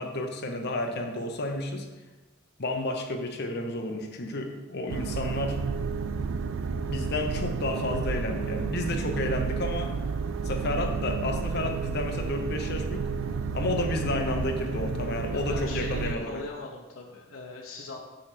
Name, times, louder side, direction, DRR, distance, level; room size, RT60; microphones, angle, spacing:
voice 1, 0.0-1.9 2.6-5.6 6.9-10.0 10.4-13.1 13.5-16.4, left 2 dB, 55° left, 4 dB, 0.9 m, -31 dB
sound 1, 4.9-16.2, right 5 dB, 70° right, 0.4 m, -31 dB
voice 2, 15.3-18.0, left 2 dB, 80° left, 0 dB, 0.9 m, -40 dB
7.7 x 3.4 x 6.0 m, 1.1 s
head